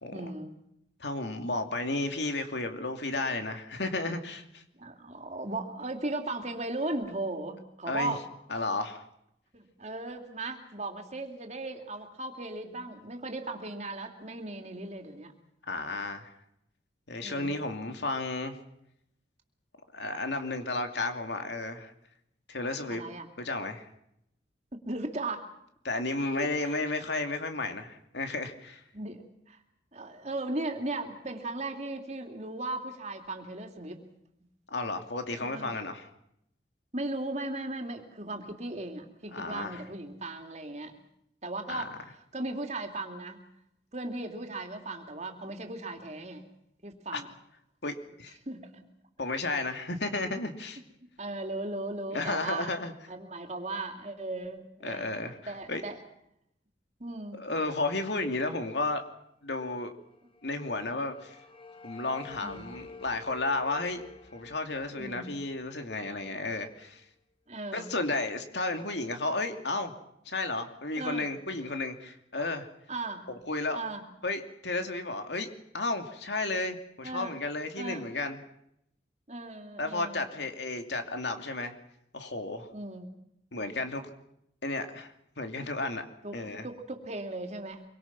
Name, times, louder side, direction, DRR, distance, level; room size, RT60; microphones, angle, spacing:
voice 1, 0.1-0.6 4.7-8.2 9.5-15.3 17.2-17.6 22.9-23.3 24.7-25.5 26.4-26.8 28.9-29.6 29.9-34.0 35.4-35.8 36.9-41.0 41.4-43.4 43.9-46.4 46.8-47.3 48.5-48.9 51.0-52.7 53.1-55.1 55.4-56.0 57.0-57.4 62.4-62.7 64.9-65.3 67.5-67.9 70.9-71.3 72.9-73.3 73.7-74.1 77.0-77.4 77.8-78.1 79.3-80.3 82.7-83.1 86.2-87.8, right 2 dB, 40° right, 4 dB, 3.0 m, -37 dB
voice 2, 1.0-4.6 7.9-8.1 8.5-9.0 15.7-16.3 17.1-18.6 19.9-21.9 22.5-23.0 23.4-23.9 25.8-28.8 34.7-36.0 39.3-39.8 41.7-41.8 47.1-47.2 47.8-48.4 49.2-50.8 52.1-52.9 54.8-55.8 57.3-59.0 59.4-59.9 60.4-61.4 61.8-64.0 64.3-67.0 67.7-69.9 70.2-72.7 73.3-73.8 74.2-75.5 75.7-78.4 79.8-81.7 82.1-82.7 83.5-84.1 84.6-86.1 86.3-86.7, left 2 dB, 70° left, 6 dB, 2.7 m, -33 dB
sound 1, 60.0-67.0, left 4 dB, 30° left, 1.5 m, -51 dB
26.0 x 24.0 x 6.0 m, 0.78 s
head